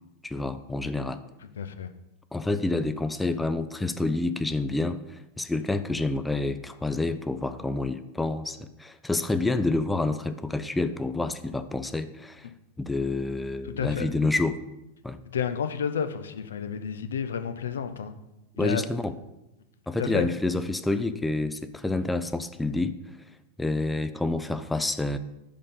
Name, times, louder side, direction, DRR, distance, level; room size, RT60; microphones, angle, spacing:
voice 1, 0.2-1.2 2.3-12.5 12.8-14.6 15.0-15.2 18.6-19.1 19.9-22.9 23.6-25.2, left 2 dB, 5° left, 11 dB, 0.4 m, -28 dB
voice 2, 1.6-1.9 13.6-14.1 15.3-18.1 18.6-18.9 20.0-20.3, left 7 dB, 65° left, 9 dB, 0.5 m, -31 dB
5.3 x 5.2 x 5.5 m, 0.95 s
figure-of-eight pair, 90°, 0 cm